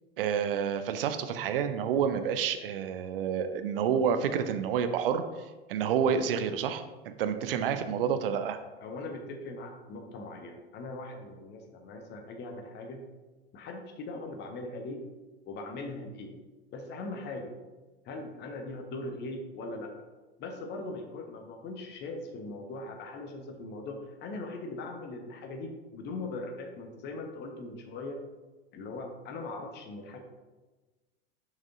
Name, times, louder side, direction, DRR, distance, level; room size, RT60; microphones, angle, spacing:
voice 1, 0.2-5.2 5.7-8.6, right 7 dB, 60° right, 9 dB, 0.6 m, -29 dB
voice 2, 8.8-13.0 13.5-15.0 15.5-16.3 16.7-17.5 18.0-19.9 20.4-28.2 28.7-30.2, left 2 dB, 30° left, 4 dB, 1.0 m, -40 dB
6.4 x 6.0 x 2.6 m, 1.2 s
figure-of-eight pair, 80°, 32 cm